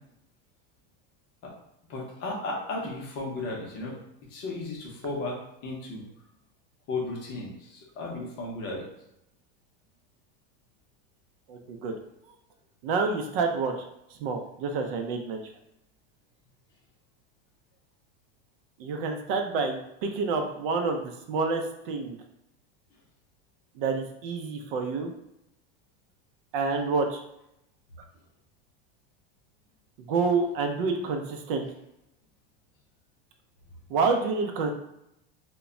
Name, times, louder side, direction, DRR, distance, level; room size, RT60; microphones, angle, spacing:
voice 1, 1.9-4.0 4.3-6.0 6.9-8.9, left 2 dB, 35° left, -2 dB, 0.6 m, -34 dB
voice 2, 11.5-11.9 12.8-13.8 14.2-15.4 18.8-22.2 23.8-25.1 26.5-27.2 30.1-31.7 33.9-34.7, right 4 dB, 70° right, 4 dB, 0.5 m, -28 dB
2.2 x 2.0 x 3.6 m, 0.81 s
supercardioid pair, 165°, 30 cm